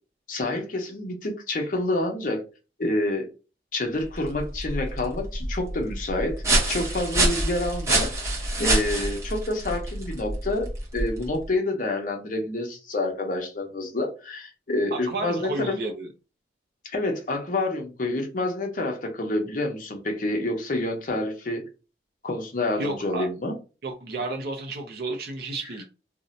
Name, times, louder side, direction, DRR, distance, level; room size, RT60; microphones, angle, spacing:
voice 1, 0.3-2.4 2.8-3.3 3.7-15.8 16.8-21.6 22.2-23.5, left 2 dB, 45° left, 3 dB, 0.7 m, -28 dB
sound 1, 4.0-11.4, right 2 dB, 15° right, 0.8 m, -27 dB
voice 2, 14.9-16.1 22.8-23.3 23.8-25.8, right 2 dB, 55° right, 2 dB, 0.5 m, -31 dB
2.6 x 2.1 x 3.8 m, 0.32 s
head